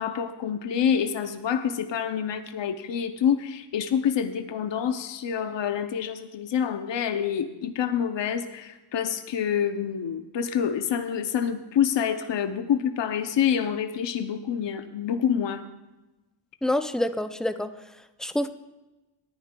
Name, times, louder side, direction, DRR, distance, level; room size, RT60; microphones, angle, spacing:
voice 1, 0.0-15.6, left 8 dB, 70° left, 9 dB, 0.6 m, -27 dB
voice 2, 16.6-17.7 18.2-18.5, left 1 dB, ahead, 10 dB, 0.3 m, -26 dB
19.0 x 10.5 x 2.2 m, 1.1 s
wide cardioid pair, 115°, 46 cm